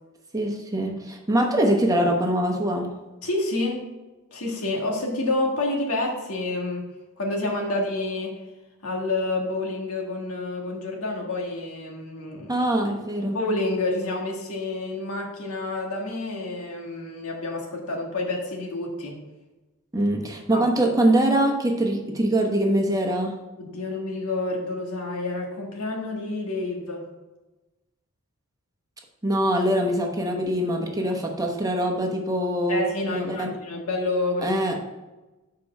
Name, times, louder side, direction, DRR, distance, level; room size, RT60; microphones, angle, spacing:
voice 1, 0.3-2.9 12.5-13.4 19.9-23.3 29.2-32.8 33.1-33.5 34.4-34.7, right 1 dB, 15° right, 1 dB, 1.0 m, -23 dB
voice 2, 3.2-3.9 4.3-6.9 7.2-8.3 8.8-12.7 13.3-19.2 20.5-20.7 23.6-27.1 32.7-34.6, left 2 dB, 90° left, 1 dB, 1.6 m, -28 dB
6.8 x 4.7 x 5.3 m, 1.1 s
head